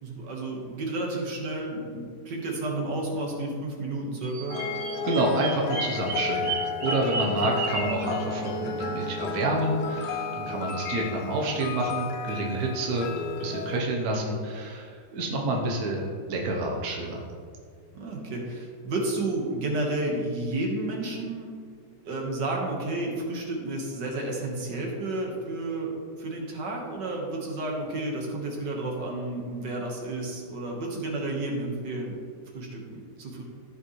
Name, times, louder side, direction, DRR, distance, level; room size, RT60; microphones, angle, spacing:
voice 1, 0.0-4.6 17.9-21.5 22.0-25.9 26.2-32.2 32.5-33.4, right 2 dB, 80° right, -1 dB, 2.1 m, -31 dB
Bird vocalization bird call bird song, 4.2-8.0, right 5 dB, 45° right, 0.6 m, -33 dB
sound 1, 4.5-13.8, left 5 dB, 75° left, 1.2 m, -33 dB
voice 2, 5.0-6.5 6.8-13.1 13.4-17.2, right 2 dB, 60° right, 0 dB, 1.5 m, -28 dB
14.5 x 5.3 x 3.2 m, 2.1 s
omnidirectional pair, 1.8 m